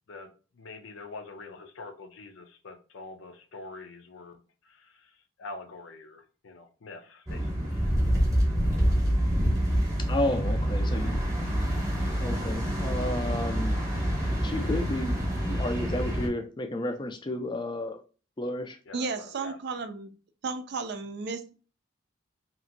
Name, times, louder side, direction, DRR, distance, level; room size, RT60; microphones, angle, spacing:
voice 1, 0.6-4.4 4.7-5.0 5.4-7.9 18.9-19.6, left 3 dB, 80° left, 0.6 m, -45 dB
sound 1, 7.3-16.3, equal, 15° right, 0.9 m, -27 dB
voice 2, 10.1-11.7 12.2-13.8 14.4-18.0 18.4-18.8, left 1 dB, 25° left, 0.4 m, -32 dB
voice 3, 18.9-20.1 20.4-21.5, right 4 dB, 55° right, 0.4 m, -33 dB
2.9 x 2.5 x 2.5 m
head